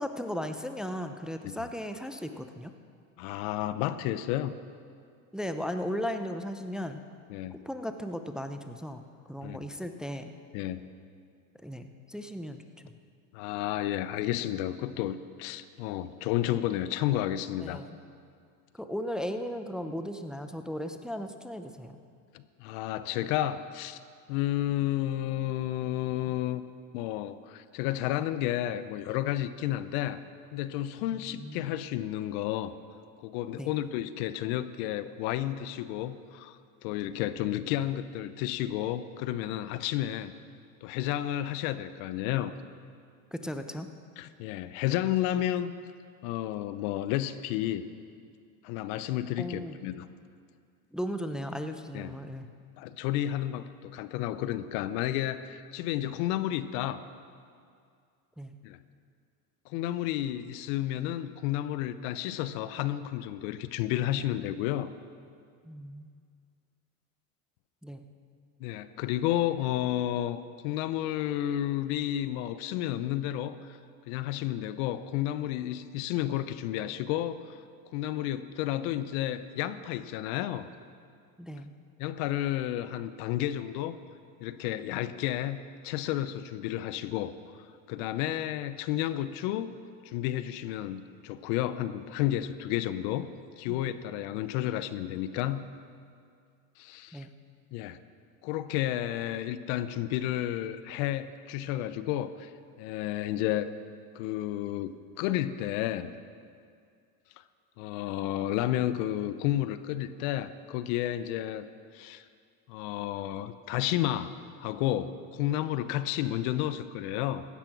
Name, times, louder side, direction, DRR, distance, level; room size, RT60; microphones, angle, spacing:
voice 1, 0.0-2.7 5.3-7.0 7.7-9.0 9.3-10.3 11.6-12.9 17.6-18.0 18.8-22.0 31.1-31.7 33.6-33.7 43.3-43.9 49.4-49.8 50.9-52.5 58.4-58.6 65.6-66.1 67.8-68.1 81.4-81.7 97.1-97.3, equal, ahead, 7 dB, 0.7 m, -36 dB
voice 2, 3.2-4.5 7.3-7.6 9.4-9.6 10.5-10.8 13.3-17.8 22.3-24.0 24.3-26.6 26.9-30.2 30.5-32.7 33.2-40.3 40.8-42.5 44.2-45.7 46.2-47.9 48.6-50.1 51.9-52.2 52.8-57.0 58.6-58.8 59.7-64.9 68.6-73.8 74.1-77.6 77.9-80.7 82.0-84.0 84.4-87.3 87.9-89.7 90.0-93.3 93.6-95.6 96.8-97.3 97.7-98.0 98.4-102.5 102.8-103.7 104.1-106.1 107.8-111.7 111.9-112.2 112.7-117.5, left 13 dB, 70° left, 13 dB, 0.8 m, -31 dB
15.5 x 10.0 x 6.1 m, 2.3 s
supercardioid pair, 100°, 44 cm